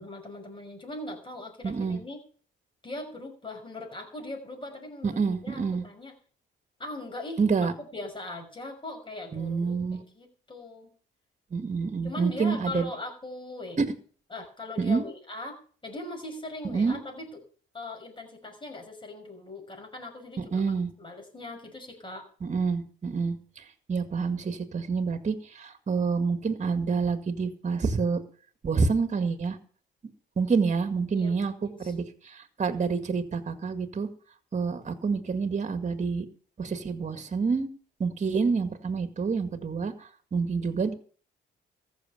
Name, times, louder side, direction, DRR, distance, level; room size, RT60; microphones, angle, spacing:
voice 1, 0.0-2.2 2.8-5.2 5.4-6.1 6.8-7.4 7.8-10.9 12.0-13.8 14.3-17.4 17.7-22.3 31.1-31.9, left 2 dB, 25° left, 3 dB, 5.7 m, -40 dB
voice 2, 1.6-2.0 5.0-5.8 7.4-7.7 9.3-10.0 11.5-12.9 13.8-13.9 14.8-15.0 16.7-17.0 20.4-20.9 22.4-28.2 28.6-29.6 30.4-34.1 34.5-36.3 36.6-37.7 38.0-40.9, right 5 dB, 35° right, 9 dB, 1.9 m, -28 dB
14.5 x 6.5 x 9.0 m, 0.44 s
cardioid pair, 90°, 20 cm